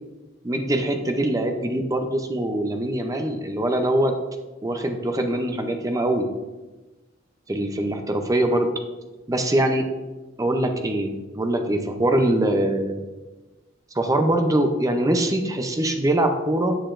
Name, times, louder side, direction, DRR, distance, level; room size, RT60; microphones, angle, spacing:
voice 1, 0.4-4.2 4.6-6.3 7.5-8.7 9.3-9.9 10.4-13.0 13.9-16.8, right 1 dB, 15° right, 5 dB, 0.6 m, -23 dB
7.8 x 6.7 x 2.5 m, 1.2 s
head